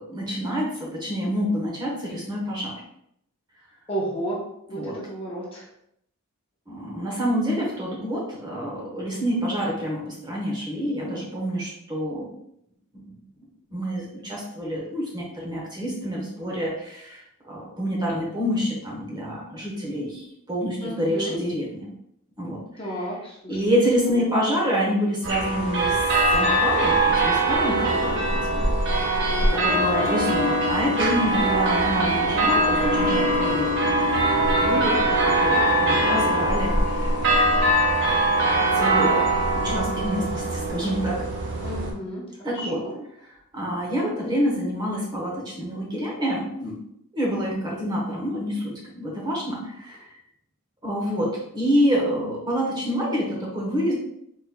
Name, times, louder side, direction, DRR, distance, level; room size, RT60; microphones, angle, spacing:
voice 1, 0.0-2.7 4.7-4.9 6.7-12.3 12.9-13.1 13.7-17.2 17.5-21.8 22.4-22.6 23.5-26.0 26.3-29.2 29.5-34.0 34.6-35.0 35.2-37.5 38.7-39.2 39.5-41.2 42.4-42.8 43.5-46.8 47.1-50.0 50.8-51.3 51.5-53.9, equal, 20° right, -4 dB, 1.1 m, -27 dB
voice 2, 3.9-5.7 20.8-21.4 22.8-24.2 29.9-30.2 30.7-31.0 41.6-43.0, right 1 dB, 25° left, -5 dB, 0.8 m, -33 dB
sound 1, 25.2-41.9, right 1 dB, 55° right, 0.8 m, -22 dB
4.2 x 4.1 x 2.2 m, 0.75 s
head